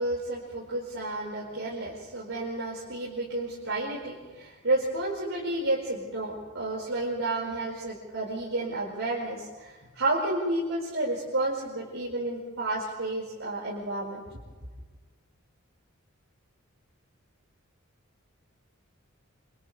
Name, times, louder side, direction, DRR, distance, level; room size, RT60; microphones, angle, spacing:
voice 1, 0.0-14.4, right 2 dB, 70° right, -6 dB, 5.1 m, -31 dB
29.0 x 27.0 x 3.4 m, 1.4 s
head